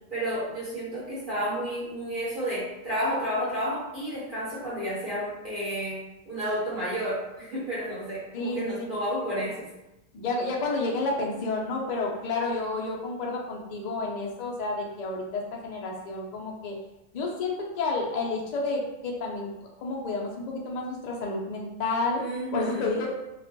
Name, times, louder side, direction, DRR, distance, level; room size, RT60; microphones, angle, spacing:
voice 1, 0.1-9.7 22.1-23.0, equal, 45° right, -9 dB, 1.1 m, -31 dB
voice 2, 8.3-8.9 10.1-16.8 17.1-19.5 19.8-22.2 22.5-23.1, left 3 dB, 70° left, -2 dB, 0.4 m, -30 dB
2.4 x 2.1 x 2.6 m, 0.93 s
omnidirectional pair, 1.3 m